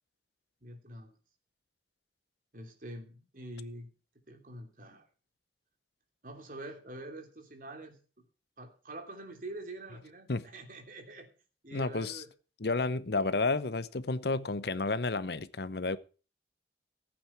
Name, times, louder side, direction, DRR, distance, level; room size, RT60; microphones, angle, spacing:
voice 1, 0.6-1.1 2.5-3.9 4.3-5.0 6.2-8.0 8.6-11.3 11.6-12.3, right 1 dB, 50° right, 3.0 m, -45 dB
voice 2, 11.7-12.2 12.6-16.0, left 3 dB, 65° left, 0.8 m, -31 dB
15.0 x 8.8 x 4.5 m
head